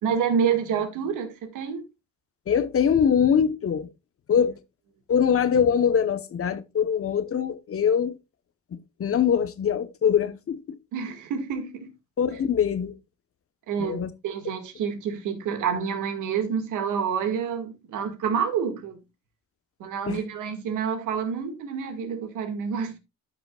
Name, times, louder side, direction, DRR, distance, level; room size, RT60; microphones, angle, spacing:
voice 1, 0.0-1.9 10.9-11.9 13.7-19.0 19.8-23.0, right 7 dB, 85° right, 1.9 m, -28 dB
voice 2, 2.5-3.9 4.3-4.5 5.1-8.2 8.7-10.6 12.2-13.0 13.8-14.1 20.1-20.2, left 7 dB, 50° left, 1.0 m, -23 dB
13.0 x 6.1 x 2.3 m
cardioid pair, 90°, 30 cm